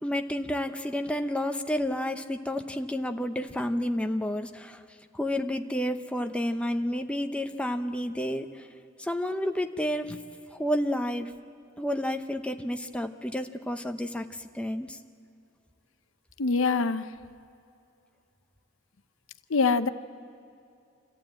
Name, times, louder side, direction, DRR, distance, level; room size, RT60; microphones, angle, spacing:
voice 1, 0.0-4.8 5.1-8.7 9.0-10.2 10.5-11.3 11.8-15.0, equal, 5° left, 5 dB, 0.7 m, -30 dB
voice 2, 16.4-17.1 19.5-19.9, left 4 dB, 85° left, 12 dB, 0.7 m, -24 dB
25.5 x 14.5 x 8.9 m, 2.6 s
head